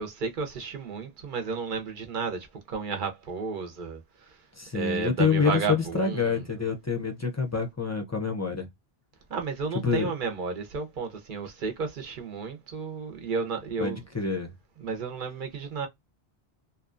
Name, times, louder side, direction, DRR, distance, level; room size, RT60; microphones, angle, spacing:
voice 1, 0.0-4.4 4.7-6.4 9.3-14.0 14.8-15.9, right 4 dB, 60° right, 0.7 m, -32 dB
voice 2, 4.6-8.7 9.8-10.1 13.8-14.5, left 5 dB, 25° left, 0.4 m, -27 dB
2.7 x 2.2 x 2.4 m
omnidirectional pair, 1.0 m